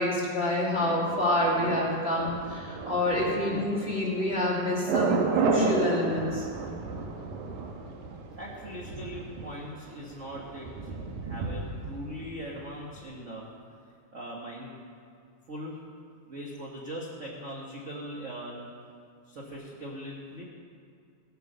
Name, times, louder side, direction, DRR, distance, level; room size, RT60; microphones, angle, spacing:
voice 1, 0.0-6.5, left 1 dB, 20° left, -6 dB, 2.5 m, -27 dB
Thunder, 0.8-12.7 12.9-13.0, right 5 dB, 75° right, 2.5 m, -33 dB
voice 2, 8.4-13.4 14.1-14.7 15.5-15.8 16.3-18.7 19.3-20.4, equal, 40° right, -3 dB, 1.1 m, -40 dB
18.0 x 8.1 x 6.7 m, 2.4 s
omnidirectional pair, 3.7 m